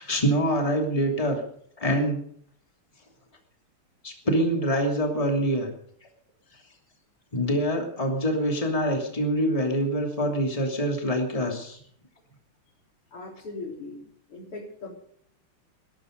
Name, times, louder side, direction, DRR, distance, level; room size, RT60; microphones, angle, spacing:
voice 1, 0.0-1.4 1.8-2.2 4.0-5.7 7.3-11.8, equal, 15° left, 2 dB, 2.8 m, -25 dB
voice 2, 13.1-14.0 14.3-14.9, left 3 dB, 85° left, 1 dB, 4.6 m, -39 dB
20.5 x 12.0 x 5.3 m, 0.63 s
omnidirectional pair, 2.4 m